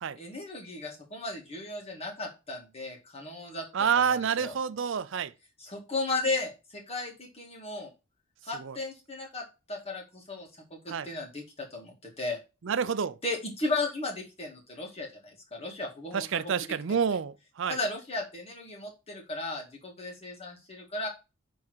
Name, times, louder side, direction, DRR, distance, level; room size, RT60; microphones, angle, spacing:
voice 1, 0.2-3.6 3.9-4.5 5.6-7.9 8.4-12.4 13.2-16.5 16.9-17.0 17.7-21.1, left 2 dB, 30° left, 1.8 m, -35 dB
voice 2, 3.7-5.3 8.6-8.8 10.9-11.1 12.6-13.2 16.1-17.8, right 7 dB, 60° right, 0.4 m, -28 dB
6.1 x 3.6 x 4.7 m
head